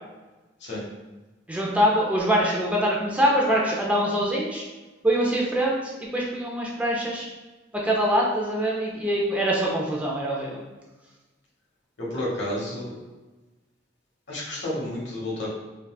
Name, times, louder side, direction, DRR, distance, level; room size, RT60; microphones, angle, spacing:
voice 1, 1.5-4.7 5.0-7.3 7.7-10.6, equal, 5° right, -3 dB, 0.4 m, -24 dB
voice 2, 12.0-12.9 14.3-15.5, left 1 dB, 70° left, -4 dB, 1.1 m, -30 dB
3.9 x 2.3 x 2.3 m, 1.2 s
head